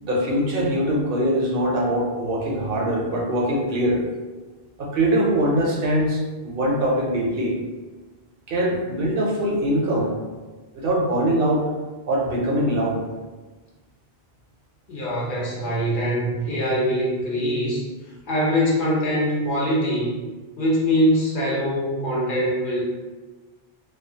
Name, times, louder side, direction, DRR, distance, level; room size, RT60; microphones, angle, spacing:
voice 1, 0.0-4.0 4.8-7.5 8.5-10.1 10.7-11.7 12.1-13.0, right 1 dB, 65° right, -3 dB, 0.7 m, -22 dB
voice 2, 14.9-17.9 18.3-20.2 20.6-22.8, equal, 60° left, -5 dB, 0.8 m, -23 dB
2.4 x 2.3 x 2.7 m, 1.3 s
omnidirectional pair, 1.0 m